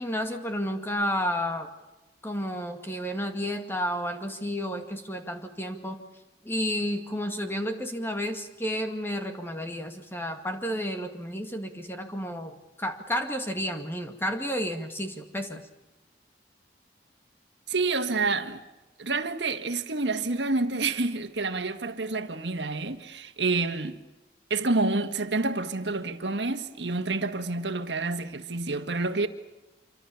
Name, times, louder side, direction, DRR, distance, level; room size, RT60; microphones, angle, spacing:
voice 1, 0.0-1.7 2.2-6.0 6.4-15.7, equal, 15° left, 2.1 m, -31 dB
voice 2, 17.7-18.6 19.0-24.0 24.5-29.3, right 3 dB, 85° right, 1.7 m, -28 dB
26.5 x 24.5 x 7.1 m
head